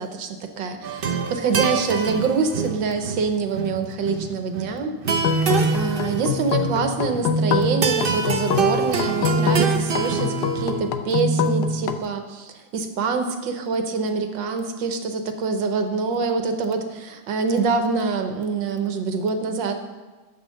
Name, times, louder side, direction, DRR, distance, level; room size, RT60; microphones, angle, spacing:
voice 1, 0.0-19.7, right 4 dB, 70° right, 7 dB, 1.6 m, -25 dB
sound 1, 0.8-10.9, right 6 dB, 50° right, 0.6 m, -27 dB
sound 2, 5.1-12.0, left 3 dB, 65° left, 1.1 m, -24 dB
11.0 x 8.3 x 6.5 m, 1.3 s
omnidirectional pair, 2.2 m